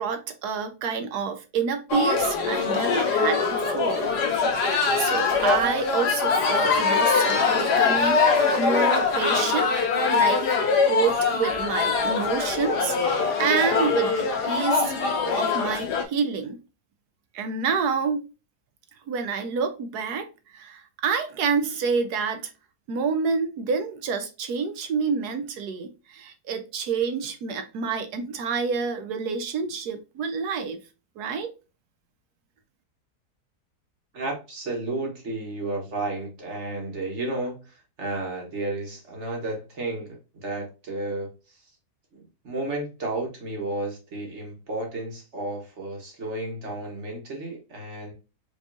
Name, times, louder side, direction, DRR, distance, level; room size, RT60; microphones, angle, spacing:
voice 1, 0.0-4.1 4.5-9.7 10.1-10.4 10.8-13.0 13.4-16.6 17.3-18.2 19.1-22.5 22.9-30.8 31.2-31.5, right 5 dB, 75° right, 1.3 m, -28 dB
sound 1, 1.9-16.0, left 4 dB, 80° left, 1.5 m, -23 dB
voice 2, 34.1-41.3 42.1-48.1, right 2 dB, 45° right, 1.7 m, -32 dB
5.2 x 3.1 x 2.6 m
omnidirectional pair, 1.8 m